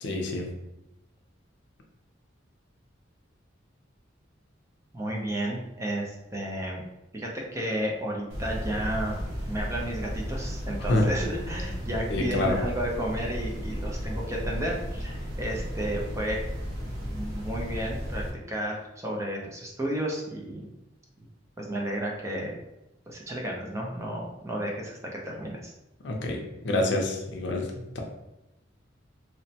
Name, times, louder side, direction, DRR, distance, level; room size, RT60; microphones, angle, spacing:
voice 1, 0.0-0.5 10.9-11.0 12.1-12.6 26.0-28.0, left 2 dB, 65° left, 1 dB, 0.5 m, -27 dB
voice 2, 4.9-6.8 7.1-9.2 9.5-16.4 16.9-20.7 21.6-22.6 23.1-25.7, right 1 dB, 15° right, -2 dB, 0.4 m, -32 dB
sound 1, 8.3-18.3, equal, 80° right, 0.8 m, -34 dB
3.0 x 2.1 x 2.7 m, 0.91 s
head